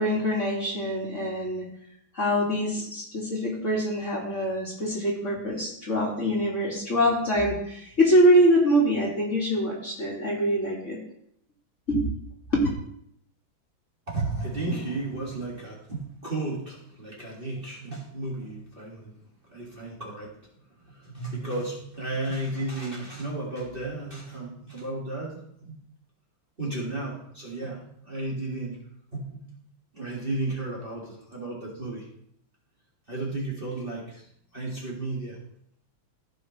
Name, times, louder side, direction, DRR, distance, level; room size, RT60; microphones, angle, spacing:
voice 1, 0.0-1.7 2.1-11.0 11.9-12.1 12.5-12.6 14.7-14.8, equal, 35° left, -4 dB, 2.2 m, -24 dB
voice 2, 14.1-19.1 19.5-20.3 20.9-25.7 26.6-28.8 29.1-29.5 29.9-32.1 33.1-34.2 34.5-35.4, right 2 dB, 25° right, -5 dB, 2.0 m, -33 dB
15.0 x 5.8 x 3.1 m, 0.70 s
omnidirectional pair, 2.3 m